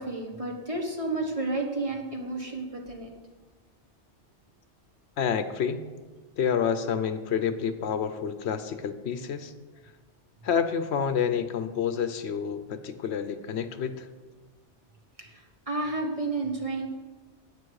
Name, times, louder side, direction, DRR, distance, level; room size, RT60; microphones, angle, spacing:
voice 1, 0.0-3.1 15.2-16.9, right 2 dB, 30° right, 1 dB, 1.2 m, -31 dB
voice 2, 5.2-5.8 6.4-9.5 10.4-14.1, left 7 dB, 70° left, 10 dB, 0.9 m, -28 dB
9.3 x 8.7 x 4.7 m, 1.4 s
omnidirectional pair, 1.2 m